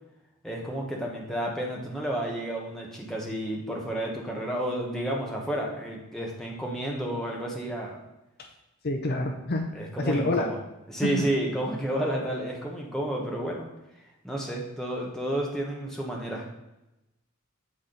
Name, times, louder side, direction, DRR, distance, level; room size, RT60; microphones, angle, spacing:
voice 1, 0.4-8.0 9.7-10.6 10.9-13.7 14.2-16.5, right 1 dB, ahead, -2 dB, 1.0 m, -31 dB
voice 2, 8.8-10.5 11.0-11.2, left 2 dB, 45° left, 4 dB, 0.5 m, -28 dB
8.0 x 4.2 x 3.8 m, 0.95 s
head